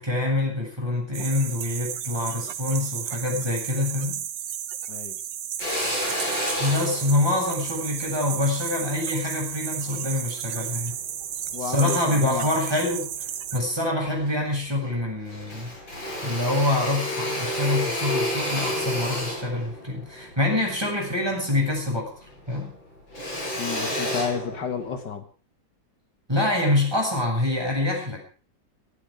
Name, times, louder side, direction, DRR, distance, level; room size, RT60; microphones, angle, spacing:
voice 1, 0.0-4.2 6.6-11.0 11.6-13.1 13.5-15.7 16.2-22.1 22.5-22.8 26.3-28.2, left 2 dB, 10° right, 0 dB, 7.5 m, -25 dB
sound 1, 1.1-13.6, right 10 dB, 70° right, 1.6 m, -33 dB
voice 2, 4.9-5.2 9.9-10.0 11.5-12.5 23.6-25.3, left 6 dB, 65° left, 8 dB, 2.0 m, -31 dB
Drill, 5.6-10.1 10.7-11.9 12.3-13.3 13.6-13.7 14.0-15.0 15.2-21.9 22.2-25.1, left 1 dB, 85° left, 7.7 m, -31 dB
17.5 x 15.5 x 5.1 m, 0.39 s
omnidirectional pair, 2.0 m